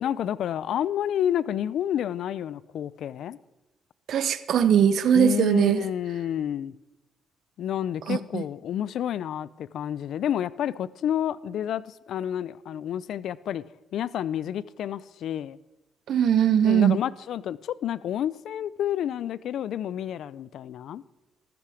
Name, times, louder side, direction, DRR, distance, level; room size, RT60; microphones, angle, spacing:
voice 1, 0.0-3.4 5.1-6.7 7.6-13.6 13.9-15.6 16.6-21.0, left 10 dB, 70° left, 0.5 m, -29 dB
voice 2, 4.1-5.8 8.1-8.4 16.1-17.0, right 9 dB, 65° right, 0.8 m, -20 dB
14.0 x 13.0 x 5.0 m
cardioid pair, 90°, 0 cm